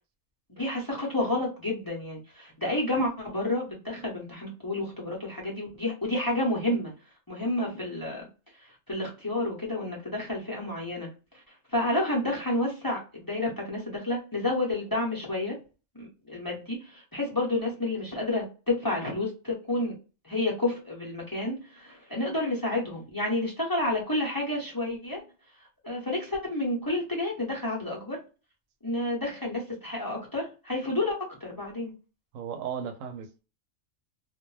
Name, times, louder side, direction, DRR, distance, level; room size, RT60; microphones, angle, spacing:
voice 1, 0.5-6.9 7.3-8.3 8.6-11.4 11.7-15.6 15.9-20.0 20.2-25.2 25.8-28.2 28.8-31.9, left 1 dB, 20° left, 0.6 m, -30 dB
voice 2, 32.3-33.4, right 7 dB, 85° right, 1.0 m, -35 dB
2.4 x 2.1 x 3.1 m
omnidirectional pair, 1.3 m